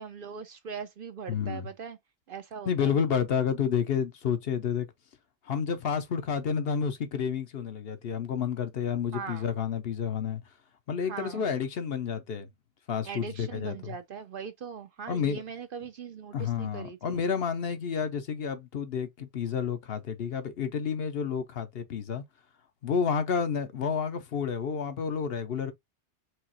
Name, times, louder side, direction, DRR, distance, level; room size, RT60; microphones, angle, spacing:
voice 1, 0.0-2.0 2.3-3.0 9.1-9.5 11.1-11.5 13.0-17.2, right 6 dB, 60° right, 0.7 m, -40 dB
voice 2, 1.3-1.7 2.7-4.9 5.5-10.4 10.9-12.5 12.9-13.9 15.1-15.4 16.3-22.2 22.8-25.7, left 7 dB, 60° left, 0.9 m, -30 dB
4.7 x 2.9 x 2.8 m
omnidirectional pair, 1.2 m